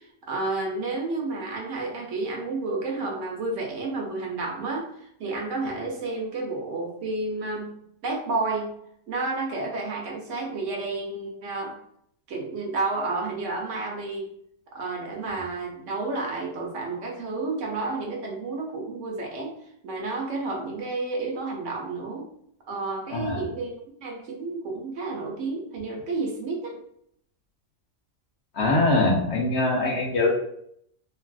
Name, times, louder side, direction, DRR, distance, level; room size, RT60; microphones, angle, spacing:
voice 1, 0.3-7.7 8.0-8.7 9.1-11.8 12.3-14.3 14.7-19.5 19.8-22.3 22.7-26.8, right 3 dB, 70° right, 0 dB, 0.9 m, -31 dB
voice 2, 23.1-23.5 28.5-30.3, left 2 dB, 60° left, -2 dB, 0.8 m, -23 dB
3.2 x 2.3 x 2.3 m, 0.69 s
omnidirectional pair, 1.4 m